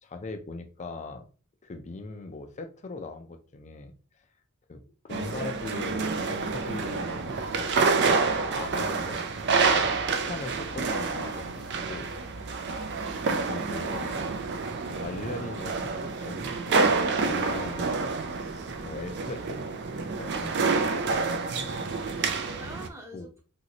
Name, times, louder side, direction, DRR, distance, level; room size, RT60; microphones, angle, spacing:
voice 1, 0.0-1.3 1.6-3.9 4.7-7.8 8.2-9.3 9.5-12.8 13.3-14.3 14.9-18.1 18.5-19.6 20.1-21.2 21.5-21.7 22.1-22.5 23.1-23.3, left 3 dB, 30° left, 6 dB, 0.4 m, -40 dB
sound 1, 5.1-22.9, right 4 dB, 50° right, 0.4 m, -28 dB
voice 2, 12.6-13.7 22.4-23.4, equal, 15° right, 1 dB, 0.7 m, -47 dB
3.0 x 2.6 x 2.8 m, 0.37 s
head